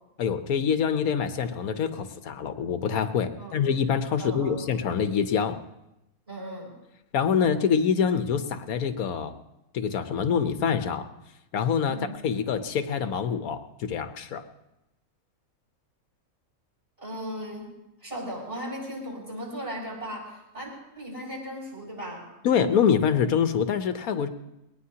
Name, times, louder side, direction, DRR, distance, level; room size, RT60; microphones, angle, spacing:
voice 1, 0.2-5.6 7.1-9.3 9.7-11.1 11.5-12.0 12.2-14.4 22.4-24.3, left 7 dB, 85° left, 9 dB, 1.3 m, -25 dB
voice 2, 4.2-4.6 6.3-6.7 11.8-12.2 17.0-17.7 18.0-22.2, equal, 20° right, -3 dB, 6.5 m, -37 dB
21.0 x 19.0 x 2.8 m, 0.89 s
omnidirectional pair, 1.5 m